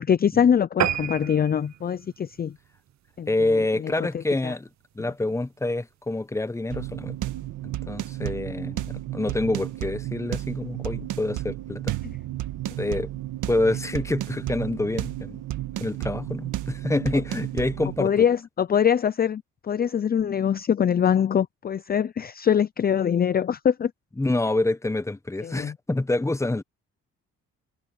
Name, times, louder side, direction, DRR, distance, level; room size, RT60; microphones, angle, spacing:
voice 1, 0.0-2.6 3.2-3.3 3.8-4.5 18.0-23.9 25.4-25.7, left 8 dB, 30° left, 0.5 m, -23 dB
sound 1, 0.8-3.5 4.0-4.2 4.7-4.8 5.1-5.2 5.4-5.5, right 11 dB, 65° right, 1.0 m, -31 dB
voice 2, 3.3-4.7 5.0-7.2 7.9-11.9 12.8-13.1 13.5-15.4 15.8-18.3 24.2-26.6, left 2 dB, 10° left, 1.0 m, -27 dB
sound 2, 6.7-18.1, right 14 dB, 90° right, 1.7 m, -32 dB
cardioid pair, 90°, 30 cm